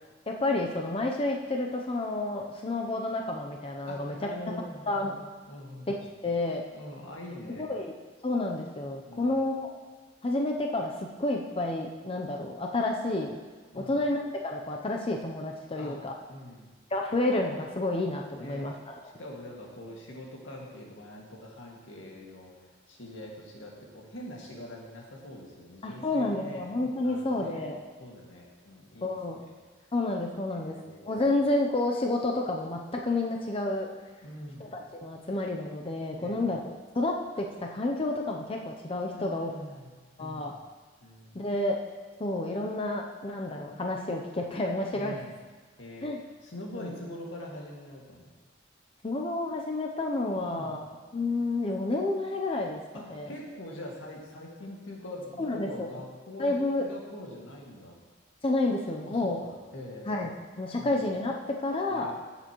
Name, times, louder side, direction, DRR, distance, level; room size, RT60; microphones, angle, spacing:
voice 1, 0.3-4.2 4.9-5.2 5.9-6.6 7.6-7.9 8.2-9.7 10.2-13.4 13.7-16.1 16.9-19.0 25.8-27.8 29.0-29.4 29.9-33.9 34.6-36.6 36.9-39.5 40.2-40.5 41.3-41.8 42.2-45.2 46.0-46.2 46.7-46.9 49.0-50.8 51.1-52.8 53.1-53.3 55.4-55.9 56.4-56.9 58.4-59.4 60.1-62.1, left 2 dB, 30° left, 1 dB, 0.6 m, -30 dB
voice 2, 3.9-6.0 6.7-7.7 9.0-9.4 13.7-14.0 15.7-16.0 16.3-16.7 18.4-18.7 19.2-26.7 27.0-27.7 28.0-29.5 30.5-31.2 34.2-34.8 36.2-36.4 39.1-40.6 41.0-41.5 44.9-45.3 45.8-46.1 46.4-48.3 50.4-50.8 52.9-58.0 59.1-60.3 60.8-61.0 61.9-62.2, left 1 dB, 90° left, -2 dB, 2.0 m, -44 dB
14.5 x 6.8 x 3.0 m, 1.4 s
head